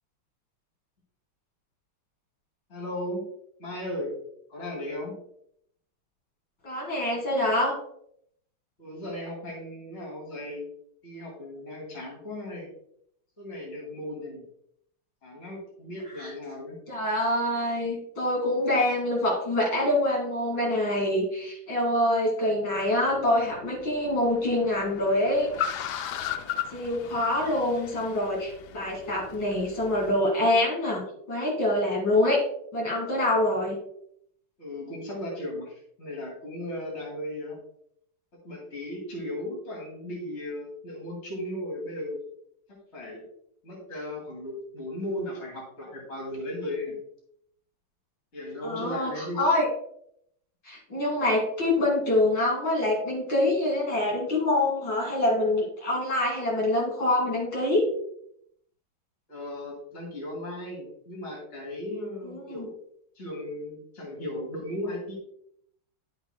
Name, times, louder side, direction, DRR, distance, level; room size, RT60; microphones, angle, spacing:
voice 1, 2.7-3.2 3.6-4.1 4.5-5.2 8.8-10.7 11.0-12.7 13.4-14.4 15.2-16.8 34.6-37.6 38.4-42.2 42.7-43.2 43.6-47.0 48.3-49.4 59.3-62.7 63.1-65.2, left 1 dB, 30° left, -3 dB, 2.7 m, -36 dB
voice 2, 6.6-7.8 16.2-16.3 16.9-25.7 26.7-32.4 32.7-33.8 48.6-49.7 50.6-57.9 62.2-62.7, left 1 dB, 60° left, -4 dB, 3.0 m, -25 dB
Car, 22.8-30.2, left 9 dB, 75° left, 0.9 m, -37 dB
10.5 x 7.2 x 2.2 m, 0.71 s
omnidirectional pair, 2.3 m